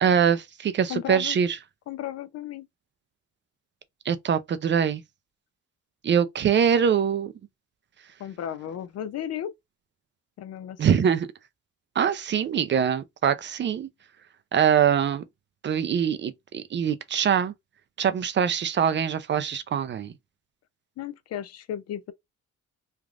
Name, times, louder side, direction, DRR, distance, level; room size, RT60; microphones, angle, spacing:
voice 1, 0.0-1.6 4.1-5.0 6.0-7.3 10.8-11.3 12.0-13.9 14.5-15.2 15.6-17.5 18.0-20.1, right 8 dB, 40° right, 0.4 m, -23 dB
voice 2, 0.9-1.4 1.9-2.7 8.2-9.5 10.4-11.1 21.0-22.1, left 10 dB, 55° left, 0.4 m, -34 dB
3.3 x 2.4 x 2.3 m
cardioid pair, 90°, 30 cm